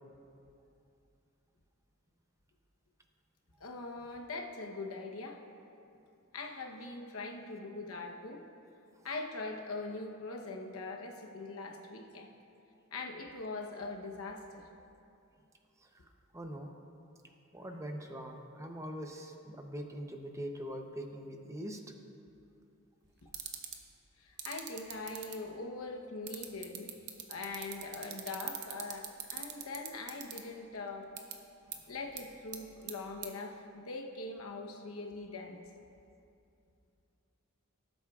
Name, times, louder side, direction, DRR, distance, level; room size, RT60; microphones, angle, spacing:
voice 1, 3.6-5.4 6.3-8.4 9.0-12.3 12.9-14.6 24.2-26.9 27.3-29.1 29.3-31.1 31.9-35.6, left 3 dB, 85° left, 2 dB, 1.0 m, -42 dB
voice 2, 16.3-16.7 17.5-21.8, equal, 15° right, 3 dB, 0.7 m, -42 dB
sound 1, 23.3-23.8 24.4-25.3 26.3-30.4 31.2-31.3 31.7-31.8 32.2-32.3 32.5-32.9 33.2-33.3, right 12 dB, 55° right, 0.8 m, -40 dB
18.5 x 8.0 x 2.4 m, 2.6 s
head